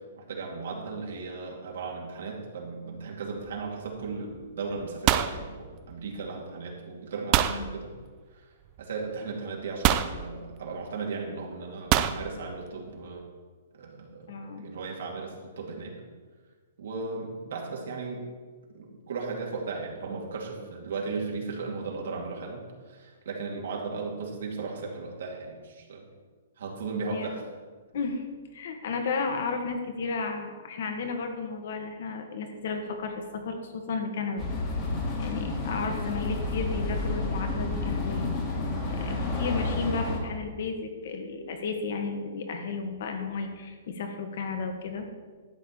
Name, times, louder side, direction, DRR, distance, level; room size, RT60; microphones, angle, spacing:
voice 1, 0.2-7.9 8.3-8.4 8.8-13.2 13.8-14.3 14.6-15.9 16.8-18.3 18.7-26.1 26.6-27.4, right 4 dB, 65° right, -1 dB, 2.6 m, -36 dB
sound 1, 3.4-3.8 4.0-4.4 4.7-6.3 7.3-7.6 8.8-8.9 9.8-10.2 11.9-12.2, right 12 dB, 25° right, 0.4 m, -24 dB
voice 2, 7.5-7.8 14.3-14.6 27.1-27.3 27.9-28.2 28.5-34.6 35.2-38.3 38.9-45.1, left 4 dB, 55° left, 4 dB, 1.8 m, -33 dB
sound 2, 34.4-40.2, left 2 dB, 20° left, 1.9 m, -30 dB
12.0 x 4.9 x 8.5 m, 1.5 s
hypercardioid pair, 170°, 0 cm